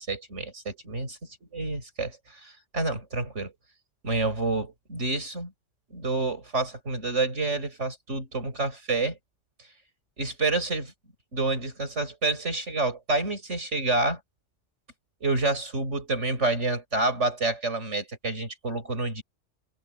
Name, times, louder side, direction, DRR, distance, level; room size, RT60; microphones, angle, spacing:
voice 1, 0.0-1.2 1.5-3.5 4.0-5.5 5.9-9.2 10.2-10.9 11.3-14.2 15.2-19.2, right 3 dB, 70° right, 6.1 m, -28 dB
omnidirectional pair, 1.3 m